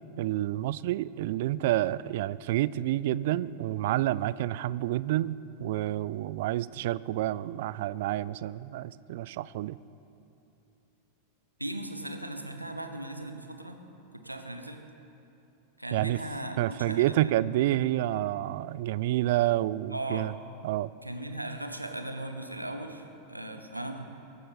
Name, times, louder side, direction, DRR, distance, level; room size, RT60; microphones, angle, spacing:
voice 1, 0.2-9.8 15.9-16.2 16.6-20.3 20.6-20.9, right 14 dB, 50° right, 19 dB, 0.4 m, -29 dB
voice 2, 11.6-13.8 14.2-14.8 15.8-17.4 19.9-20.3 21.0-24.0, right 1 dB, 85° right, 6 dB, 1.2 m, -38 dB
23.5 x 11.5 x 4.2 m, 2.7 s
figure-of-eight pair, 90°, 0 cm